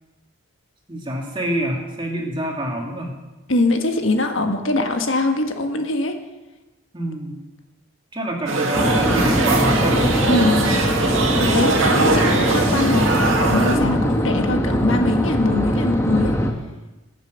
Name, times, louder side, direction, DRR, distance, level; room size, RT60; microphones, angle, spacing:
voice 1, 0.9-3.1 6.9-7.4 8.1-10.3, right 1 dB, 20° right, 0 dB, 2.4 m, -26 dB
voice 2, 3.5-6.1 10.3-10.7 11.4-16.4, left 2 dB, 65° left, 5 dB, 1.5 m, -22 dB
sound 1, 8.5-13.8, right 3 dB, 65° right, 2.0 m, -21 dB
sound 2, 8.7-16.5, equal, 10° left, 1.2 m, -21 dB
22.0 x 7.6 x 6.4 m, 1.1 s
head